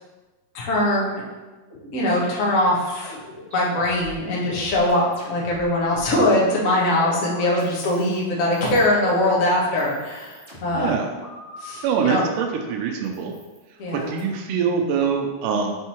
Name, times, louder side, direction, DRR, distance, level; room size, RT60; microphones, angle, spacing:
voice 1, 0.5-1.2 1.9-3.1 3.5-10.9 11.6-12.2 13.8-14.1, left 1 dB, 90° left, -5 dB, 0.7 m, -22 dB
sound 1, 1.7-5.6 5.9-8.2 8.5-9.2 9.6-12.4 13.0-14.2, left 1 dB, 25° right, 1.4 m, -41 dB
voice 2, 10.8-11.1 11.8-13.3 13.9-15.7, right 6 dB, 75° right, 3 dB, 2.2 m, -24 dB
5.3 x 4.6 x 4.4 m, 1.2 s
omnidirectional pair, 3.9 m